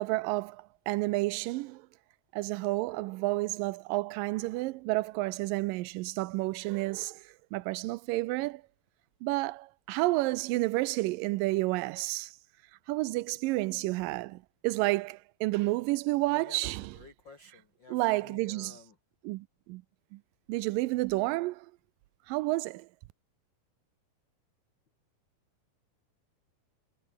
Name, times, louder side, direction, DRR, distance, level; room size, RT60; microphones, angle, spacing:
voice 1, 0.0-1.9 2.3-8.6 9.2-12.3 12.9-17.0 17.9-18.8 19.2-19.8 20.1-20.2 20.5-21.7 22.3-22.9, right 20 dB, 90° right, 2.3 m, -30 dB
voice 2, 16.2-19.0, left 4 dB, 35° left, 2.5 m, -52 dB
omnidirectional pair, 3.9 m